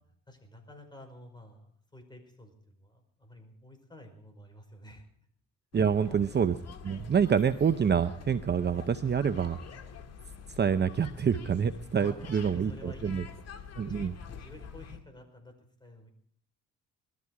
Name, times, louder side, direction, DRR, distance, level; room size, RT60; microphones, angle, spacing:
voice 1, 0.3-5.0 6.0-6.5 11.9-13.4 13.9-16.1, left 1 dB, 15° left, 4 dB, 5.2 m, -51 dB
sound 1, 5.7-15.0, left 6 dB, 55° left, 2.0 m, -46 dB
voice 2, 5.7-6.6 6.8-9.6 10.6-13.2 13.8-14.2, right 7 dB, 35° right, 11 dB, 0.8 m, -27 dB
20.0 x 14.0 x 4.8 m, 0.64 s
cardioid pair, 90°, 30 cm